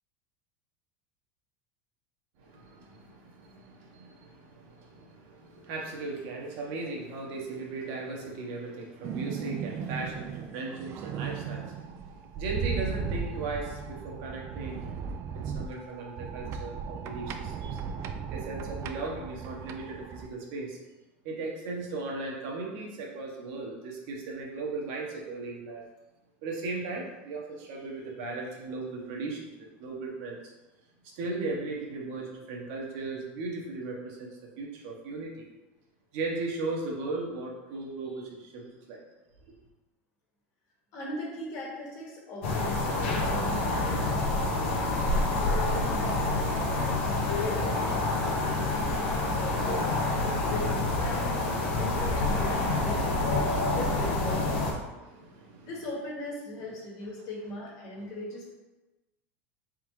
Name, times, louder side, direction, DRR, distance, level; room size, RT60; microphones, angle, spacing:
voice 1, 2.4-15.0 15.4-17.8 18.3-20.8 21.2-25.9 26.4-30.5 31.0-35.5 36.1-39.0 39.5-39.6 54.9-55.7 58.0-58.1, right 3 dB, 65° right, -1 dB, 1.0 m, -37 dB
sound 1, 9.0-20.3, right 6 dB, 45° right, 0.3 m, -36 dB
voice 2, 40.9-44.6 45.3-49.7 50.4-54.8 55.6-58.5, left 1 dB, 50° left, -3 dB, 1.4 m, -39 dB
sound 2, 42.4-54.7, left 2 dB, 80° left, 0.9 m, -27 dB
3.6 x 3.6 x 3.1 m, 1.1 s
supercardioid pair, 110°, 7 cm